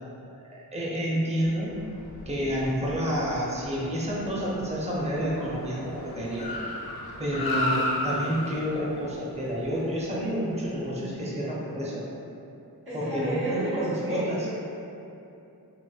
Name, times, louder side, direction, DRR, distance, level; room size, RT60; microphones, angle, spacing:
voice 1, 0.5-1.8 2.3-6.5 7.2-12.0 12.9-14.5, equal, 20° right, -6 dB, 0.6 m, -29 dB
Car, 1.6-11.1, left 1 dB, 75° left, 0.5 m, -35 dB
voice 2, 12.9-14.5, right 1 dB, 75° right, -13 dB, 0.9 m, -31 dB
4.6 x 2.1 x 2.3 m, 2.8 s
wide cardioid pair, 55°, 37 cm